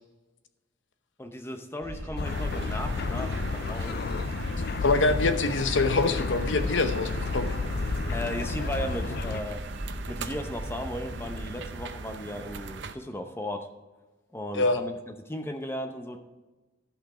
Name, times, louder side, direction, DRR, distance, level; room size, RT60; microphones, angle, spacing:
voice 1, 1.2-4.0 8.1-9.6 10.1-13.7 14.3-16.2, left 1 dB, 15° left, 6 dB, 0.8 m, -36 dB
sound 1, 1.8-11.5, equal, 30° right, 1.9 m, -39 dB
sound 2, 2.2-9.4, left 4 dB, 55° left, 0.4 m, -32 dB
sound 3, 2.2-12.9, right 4 dB, 70° right, 0.6 m, -40 dB
voice 2, 4.8-7.5 14.5-14.8, left 3 dB, 80° left, 9 dB, 0.8 m, -25 dB
12.0 x 6.0 x 5.0 m, 1.2 s
head